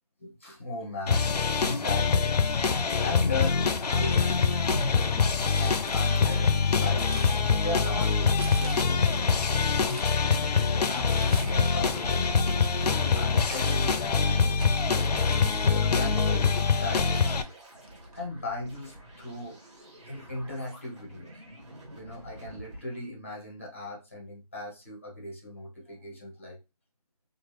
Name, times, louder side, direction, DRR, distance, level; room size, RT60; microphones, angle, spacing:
voice 1, 0.2-1.3 1.6-2.4 2.7-4.9 5.2-8.2 8.6-9.7 10.2-14.6 15.1-15.2 15.5-17.3 18.1-19.6 20.0-21.4 21.9-26.6, left 2 dB, 20° left, 0.5 m, -38 dB
sound 1, 1.1-17.4, left 5 dB, 85° left, 0.5 m, -24 dB
Crumpling crinkling, 5.4-6.4 6.7-7.9 8.3-9.2 9.6-10.2 11.0-11.8 12.1-16.1 16.7-16.8 17.1-18.1 18.4-18.5 19.5-19.8, right 2 dB, 60° right, 0.9 m, -45 dB
sound 2, 11.2-22.8, equal, 45° right, 1.3 m, -46 dB
3.0 x 2.3 x 3.1 m
figure-of-eight pair, 175°, 20 cm